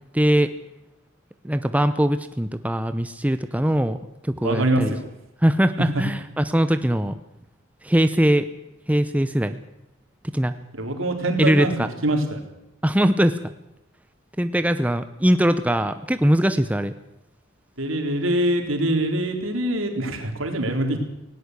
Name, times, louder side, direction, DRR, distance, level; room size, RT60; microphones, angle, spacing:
voice 1, 0.1-0.5 1.4-4.0 4.2-4.9 5.4-7.1 7.8-8.5 8.9-9.6 10.3-10.5 11.4-11.9 12.8-13.5 14.4-16.9, equal, 5° right, 10 dB, 0.7 m, -21 dB
voice 2, 4.4-5.1 5.9-6.0 10.7-12.4 17.8-21.0, right 1 dB, 70° right, 4 dB, 4.0 m, -24 dB
19.0 x 17.5 x 8.2 m, 0.88 s
head